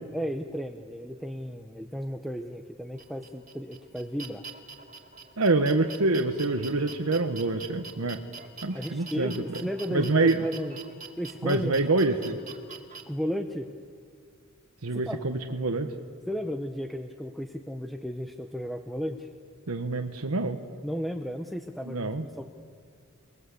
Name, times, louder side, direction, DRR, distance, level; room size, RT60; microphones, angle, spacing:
voice 1, 0.1-4.4 8.7-10.8 11.2-11.7 13.1-13.7 14.9-15.2 16.3-19.3 20.8-22.5, equal, ahead, 5 dB, 0.8 m, -34 dB
sound 1, 3.0-13.0, right 5 dB, 35° right, 2.4 m, -44 dB
voice 2, 5.4-8.2 8.6-9.6 9.9-10.4 11.4-12.4 14.8-15.9 19.7-20.6 21.9-22.2, right 3 dB, 85° right, 4 dB, 1.2 m, -26 dB
29.0 x 20.0 x 8.3 m, 2.1 s
head